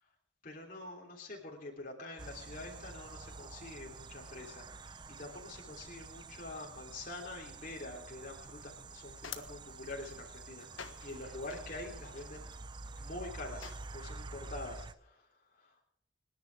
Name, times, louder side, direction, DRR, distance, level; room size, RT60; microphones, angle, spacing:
voice 1, 0.4-12.5 13.0-15.8, left 2 dB, 45° left, -1 dB, 3.2 m, -46 dB
sound 1, 2.2-15.0, right 3 dB, 25° right, 0.5 m, -48 dB
sound 2, 8.6-14.2, left 7 dB, 85° left, 1.4 m, -52 dB
29.5 x 10.5 x 3.5 m, 0.76 s
head